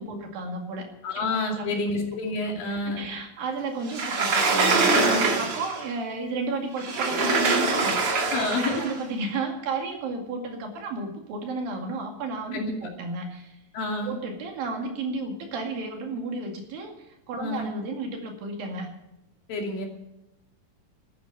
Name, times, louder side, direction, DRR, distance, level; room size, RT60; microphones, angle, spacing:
voice 1, 0.0-0.9 1.2-1.7 2.5-2.7 3.0-8.3 8.6-13.6 14.0-18.9, right 3 dB, 85° right, 2 dB, 4.0 m, -33 dB
voice 2, 1.0-3.1 8.3-8.9 12.5-12.7 13.7-14.1 17.4-17.7 19.5-19.9, left 2 dB, 80° left, 1 dB, 4.3 m, -28 dB
Sliding door, 3.9-5.9 6.8-9.0, right 3 dB, 45° right, 2.8 m, -23 dB
13.0 x 9.6 x 9.0 m, 0.86 s
omnidirectional pair, 4.0 m